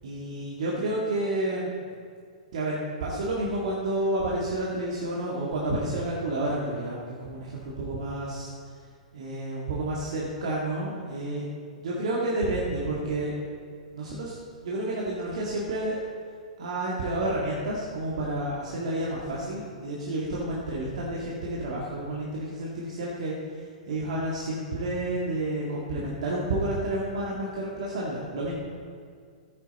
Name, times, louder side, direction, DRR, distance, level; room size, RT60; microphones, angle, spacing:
voice 1, 0.0-1.7 2.5-8.5 9.1-11.5 11.7-13.4 13.9-16.0 16.6-28.5, right 1 dB, 55° right, -5 dB, 1.9 m, -30 dB
15.5 x 8.6 x 4.2 m, 2.2 s
figure-of-eight pair, 110°, 4 cm